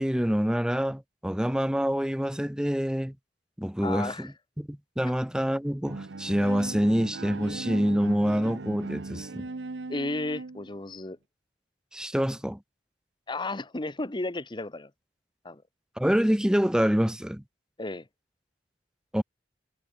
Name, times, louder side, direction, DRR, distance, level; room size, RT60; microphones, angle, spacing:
voice 1, 0.0-3.1 3.6-4.3 4.6-9.5 11.9-12.6 16.0-17.4 19.1-19.2, equal, 5° right, 0.8 m, -26 dB
voice 2, 3.8-4.3 9.9-11.2 13.3-14.9 15.4-15.6 17.8-18.1, left 2 dB, 25° left, 1.0 m, -33 dB
Bowed string instrument, 5.8-10.8, right 3 dB, 65° right, 0.8 m, -38 dB
head